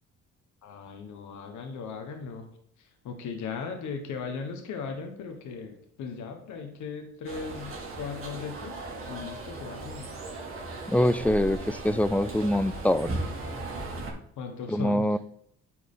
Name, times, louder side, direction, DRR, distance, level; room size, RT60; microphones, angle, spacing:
voice 1, 0.6-2.5 2.8-8.8 9.1-10.1 14.4-15.2, left 5 dB, 75° left, 5 dB, 1.3 m, -38 dB
sound 1, 7.3-14.1, right 2 dB, 45° right, 2.3 m, -37 dB
voice 2, 10.9-13.2 14.7-15.2, left 1 dB, 5° left, 15 dB, 0.3 m, -24 dB
9.8 x 4.6 x 3.8 m, 0.66 s
cardioid pair, 90°, 30 cm